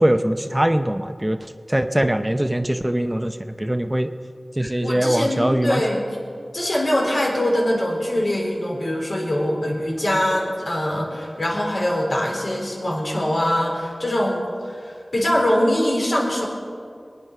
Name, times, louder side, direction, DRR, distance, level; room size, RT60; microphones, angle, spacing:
voice 1, 0.0-1.4 1.7-4.1 4.6-5.8, right 1 dB, 15° right, 8 dB, 0.7 m, -21 dB
voice 2, 4.6-6.2 6.5-16.5, left 1 dB, 70° left, -2 dB, 3.9 m, -23 dB
22.5 x 9.6 x 5.7 m, 2.3 s
wide cardioid pair, 40°, 0 cm